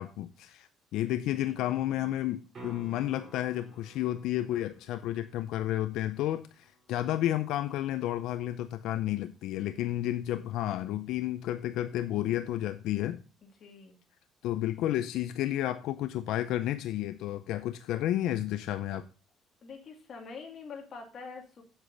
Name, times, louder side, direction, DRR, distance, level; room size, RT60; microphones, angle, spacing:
voice 1, 0.0-13.2 14.4-19.1, left 13 dB, 80° left, 11 dB, 0.5 m, -31 dB
voice 2, 1.3-2.1 13.4-13.9 19.6-21.6, left 5 dB, 40° left, 2 dB, 2.4 m, -46 dB
sound 1, 2.5-8.6 13.2-13.3, right 1 dB, 35° right, 3.6 m, -53 dB
8.4 x 7.9 x 4.0 m, 0.34 s
cardioid pair, 155°, 0 cm